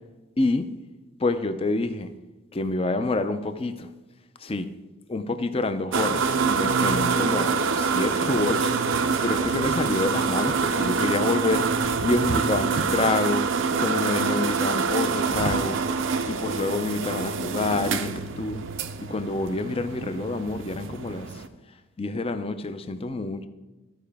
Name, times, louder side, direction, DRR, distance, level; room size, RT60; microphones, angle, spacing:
voice 1, 0.4-0.7 1.2-2.1 2.5-3.9 4.4-4.7 5.1-11.7 12.0-15.8 16.3-18.6 19.1-21.4 22.0-23.4, left 2 dB, 25° left, 0.5 m, -27 dB
sound 1, 5.9-21.5, right 5 dB, 60° right, 0.5 m, -26 dB
14.0 x 4.7 x 3.5 m
head